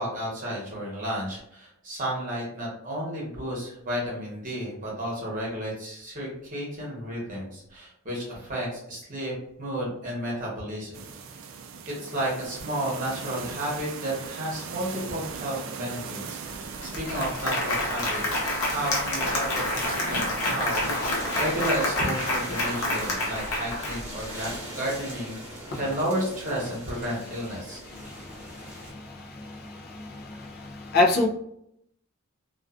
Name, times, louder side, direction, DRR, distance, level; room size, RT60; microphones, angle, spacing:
voice 1, 0.0-9.3 9.6-11.0 12.0-18.4 18.7-27.8, right 1 dB, 40° right, -4 dB, 0.9 m, -32 dB
sound 1, 10.9-23.2, right 5 dB, 60° right, 0.3 m, -40 dB
Applause, 16.5-16.6 16.8-24.4, left 1 dB, 90° left, 0.7 m, -28 dB
sound 2, 20.8-28.9, right 1 dB, 15° right, 1.0 m, -40 dB
voice 2, 27.8-31.3, left 3 dB, 45° left, 1 dB, 0.4 m, -28 dB
2.4 x 2.3 x 2.4 m, 0.74 s
head